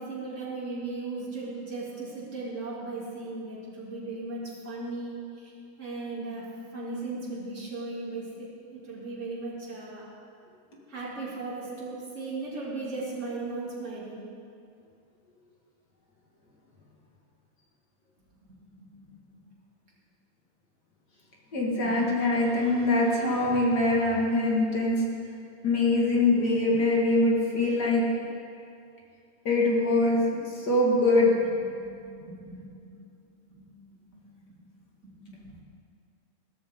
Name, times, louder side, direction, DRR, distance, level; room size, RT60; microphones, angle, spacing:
voice 1, 0.0-5.5 5.8-6.5 6.7-10.1 10.9-14.3 18.7-19.1 21.8-21.9 29.9-30.1 31.8-33.0 33.5-33.7 34.1-34.2 34.5-34.6 35.0-35.6, right 3 dB, 25° right, -6 dB, 2.7 m, -37 dB
voice 2, 21.5-25.0 25.6-28.0 29.5-30.2 30.6-31.3, left 2 dB, 40° left, -2 dB, 1.8 m, -23 dB
16.5 x 13.0 x 3.7 m, 2.5 s
omnidirectional pair, 3.7 m